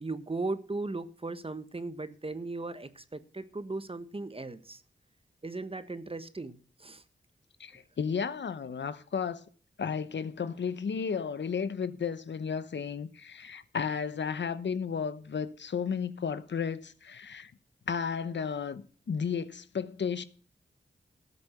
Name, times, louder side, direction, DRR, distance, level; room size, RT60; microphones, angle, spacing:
voice 1, 0.0-4.8 5.4-7.0, right 3 dB, 30° right, 1.3 m, -37 dB
voice 2, 7.6-9.4 9.8-17.5 17.9-20.2, left 6 dB, 75° left, 0.9 m, -33 dB
13.0 x 7.0 x 6.6 m
cardioid pair, 45°, 19 cm